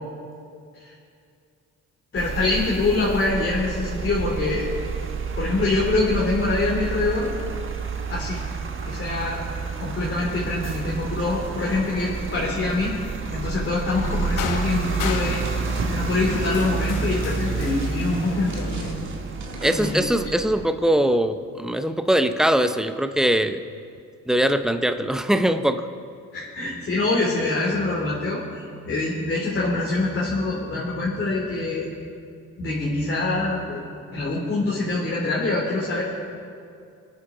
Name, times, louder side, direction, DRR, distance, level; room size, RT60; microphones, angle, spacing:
voice 1, 2.1-4.7 5.4-7.3 8.1-8.4 8.8-9.4 9.8-13.0 13.3-15.4 15.8-18.9 19.6-20.0 26.3-31.9 32.6-33.8 34.1-36.0, left 2 dB, 40° left, -6 dB, 3.1 m, -25 dB
sound 1, 2.2-20.7, right 5 dB, 40° right, 1.4 m, -30 dB
sound 2, 13.9-18.9, left 7 dB, 90° left, 1.0 m, -35 dB
sound 3, 14.7-20.4, right 4 dB, 65° right, 2.1 m, -39 dB
voice 2, 19.6-23.6 24.3-25.9, right 1 dB, ahead, 9 dB, 0.7 m, -21 dB
23.0 x 9.6 x 3.9 m, 2.4 s
cardioid pair, 90°, 30 cm